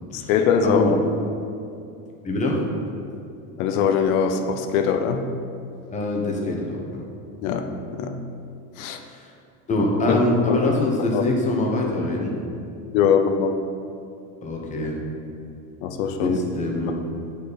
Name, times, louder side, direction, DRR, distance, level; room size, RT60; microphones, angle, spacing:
voice 1, 0.1-1.0 3.6-5.3 7.4-8.2 8.8-9.0 10.1-10.7 11.1-11.2 12.9-13.6 15.8-16.4, left 6 dB, 70° left, 6 dB, 0.7 m, -22 dB
voice 2, 0.6-0.9 2.2-2.6 5.9-6.8 9.1-9.3 9.7-12.4 14.4-15.0 16.2-16.9, left 1 dB, 15° left, -1 dB, 0.9 m, -24 dB
8.6 x 5.6 x 4.0 m, 2.6 s
cardioid pair, 155°, 43 cm